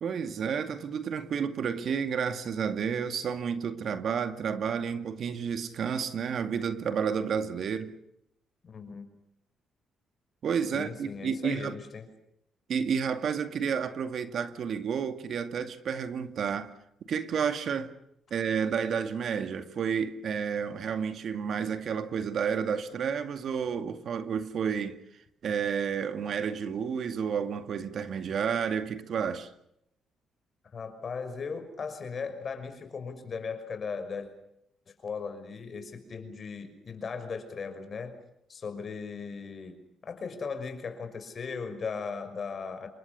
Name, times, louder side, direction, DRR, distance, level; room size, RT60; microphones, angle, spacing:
voice 1, 0.0-7.9 10.4-11.8 12.7-16.7 17.1-17.9 18.3-25.0 25.4-29.5, right 7 dB, 60° right, 2.2 m, -31 dB
voice 2, 8.6-9.1 10.7-12.1 30.7-34.3 34.9-38.1 38.5-39.8 40.0-42.9, left 5 dB, 45° left, 5.9 m, -37 dB
28.0 x 23.5 x 7.0 m
cardioid pair, 90°, 0 cm